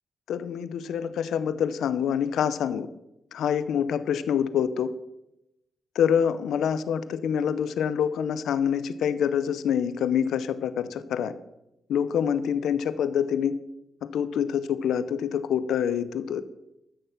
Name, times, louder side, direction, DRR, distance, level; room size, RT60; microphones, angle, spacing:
voice 1, 0.3-2.9 3.3-4.9 6.0-11.3 11.9-13.6 14.0-16.4, left 8 dB, 85° left, 13 dB, 0.7 m, -26 dB
13.5 x 6.6 x 5.9 m, 0.87 s
cardioid pair, 60°, 0 cm